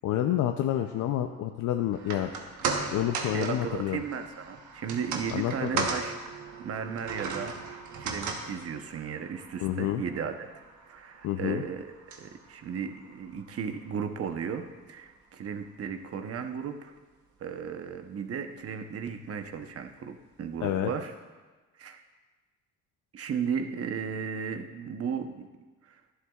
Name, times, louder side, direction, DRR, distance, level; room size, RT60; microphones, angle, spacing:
voice 1, 0.0-2.3 2.9-4.0 5.3-5.9 9.6-10.0 11.2-11.6 20.6-20.9, left 12 dB, 80° left, 5 dB, 0.5 m, -28 dB
sound 1, 1.9-14.3 14.6-14.7, right 4 dB, 80° right, 1.2 m, -37 dB
voice 2, 3.2-6.2 6.6-10.5 10.9-11.9 12.2-16.9 17.4-21.1 21.8-22.0 23.1-25.5 25.8-26.0, right 6 dB, 50° right, 6 dB, 0.9 m, -35 dB
11.0 x 11.0 x 2.4 m, 1.3 s
cardioid pair, 90°, 30 cm